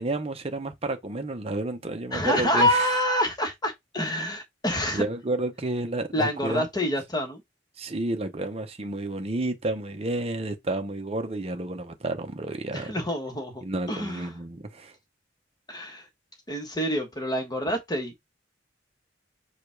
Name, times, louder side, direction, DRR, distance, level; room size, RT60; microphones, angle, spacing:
voice 1, 0.0-2.9 4.9-6.9 7.8-12.9 13.6-14.9, right 2 dB, 30° right, 0.7 m, -31 dB
voice 2, 2.1-5.0 6.1-7.4 12.7-14.3 15.7-16.1 16.5-18.2, equal, 20° left, 1.3 m, -27 dB
5.0 x 2.4 x 4.5 m
head